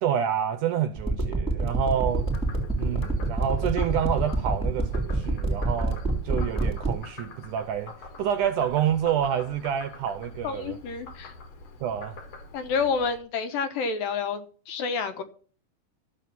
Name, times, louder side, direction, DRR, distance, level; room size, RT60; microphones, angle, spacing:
voice 1, 0.0-2.3 2.8-7.9 8.2-10.8 11.8-12.2, right 9 dB, 80° right, 1.8 m, -28 dB
sound 1, 1.0-6.9, right 2 dB, ahead, 2.7 m, -25 dB
Frog, 2.0-13.2, left 2 dB, 50° left, 2.3 m, -43 dB
voice 2, 10.4-11.3 12.5-15.2, left 5 dB, 70° left, 2.8 m, -29 dB
13.5 x 8.2 x 5.9 m
omnidirectional pair, 4.4 m